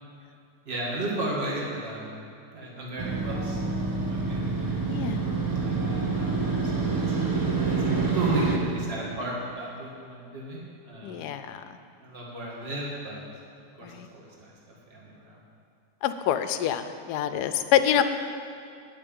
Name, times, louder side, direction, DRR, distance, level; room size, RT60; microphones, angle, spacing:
voice 1, 0.7-2.1 2.5-3.6 3.9-5.0 5.5-7.2 7.7-11.2 12.0-13.2 13.8-15.4, right 1 dB, 35° right, -4 dB, 2.1 m, -35 dB
Motorcycle, 3.0-8.6, right 4 dB, 15° right, 0.8 m, -27 dB
voice 2, 4.9-5.4 11.0-11.6 13.8-14.1 16.0-18.0, left 10 dB, 75° left, 10 dB, 1.2 m, -26 dB
10.5 x 5.8 x 8.8 m, 2.5 s
omnidirectional pair, 1.8 m